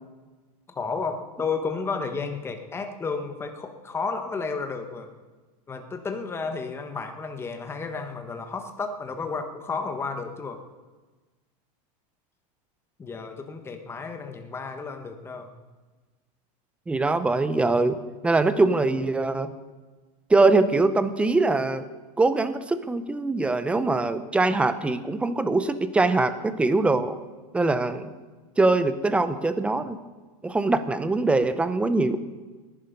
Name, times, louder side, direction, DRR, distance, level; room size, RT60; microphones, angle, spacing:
voice 1, 0.7-5.1 5.7-10.6 13.0-15.5, left 4 dB, 10° left, 6 dB, 1.3 m, -32 dB
voice 2, 16.9-18.0 18.2-19.5 20.3-21.8 22.2-27.2 27.5-28.1 28.6-30.0 30.4-32.2, right 3 dB, 5° right, 12 dB, 0.6 m, -22 dB
19.0 x 11.5 x 5.2 m, 1.3 s
supercardioid pair, 155°, 20 cm